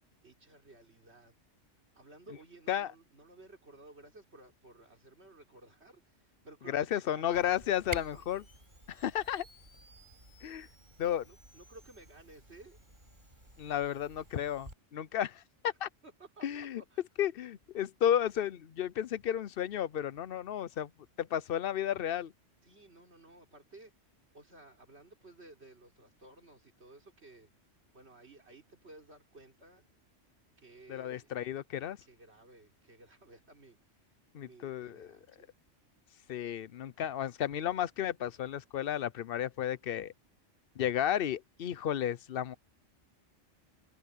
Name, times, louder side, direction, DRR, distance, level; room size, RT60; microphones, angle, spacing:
voice 1, 0.2-1.3 1.9-7.4 8.1-8.2 11.2-12.8 16.0-17.1 22.6-27.5 27.9-29.8 30.6-31.3 32.0-35.5, right 2 dB, 60° right, 4.2 m, -56 dB
voice 2, 6.7-8.4 8.9-9.4 10.4-10.7 11.0-11.2 13.6-15.9 16.4-16.8 17.2-20.9 21.2-22.3 30.9-32.0 34.3-35.2 36.3-40.1 40.8-42.5, left 10 dB, 55° left, 0.8 m, -33 dB
Camera, 7.3-14.8, right 2 dB, 40° right, 7.1 m, -50 dB
omnidirectional pair, 1.3 m